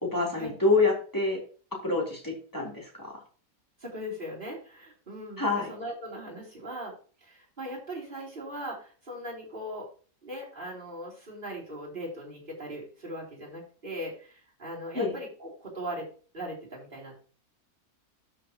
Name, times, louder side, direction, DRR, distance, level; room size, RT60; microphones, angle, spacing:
voice 1, 0.0-1.4 1.8-3.2 5.4-5.7 14.9-15.1, left 3 dB, 10° left, -3 dB, 3.5 m, -27 dB
voice 2, 3.8-6.9 7.2-9.9 10.2-16.1 16.3-17.1, equal, 35° right, -4 dB, 3.6 m, -39 dB
12.5 x 6.2 x 3.0 m, 0.39 s
omnidirectional pair, 1.6 m